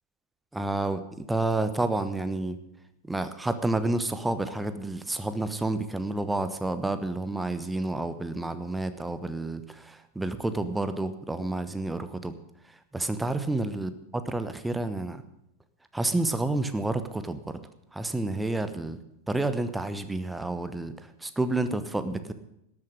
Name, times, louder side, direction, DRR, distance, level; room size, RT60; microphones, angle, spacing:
voice 1, 0.5-2.6 3.1-12.4 12.9-13.9 14.3-15.2 15.9-17.6 17.9-19.0 19.3-22.3, right 2 dB, 5° right, 11 dB, 1.1 m, -29 dB
12.5 x 8.8 x 9.8 m, 0.82 s
figure-of-eight pair, 90°, 0 cm